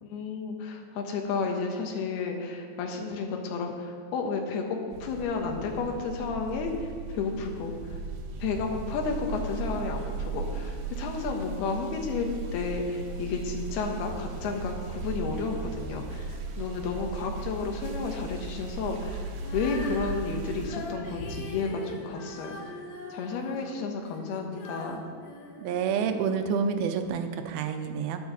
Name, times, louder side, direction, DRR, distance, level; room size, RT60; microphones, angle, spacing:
voice 1, 0.0-8.0 8.4-22.6 23.1-25.0, left 4 dB, 85° left, 3 dB, 3.1 m, -32 dB
sound 1, 4.9-20.7, right 4 dB, 65° right, 2.1 m, -37 dB
Female singing, 19.4-26.4 27.0-27.1, left 2 dB, 65° left, 2.7 m, -41 dB
voice 2, 25.6-28.2, right 6 dB, 85° right, 7 dB, 2.5 m, -28 dB
9.5 x 9.3 x 6.8 m, 2.2 s
omnidirectional pair, 4.4 m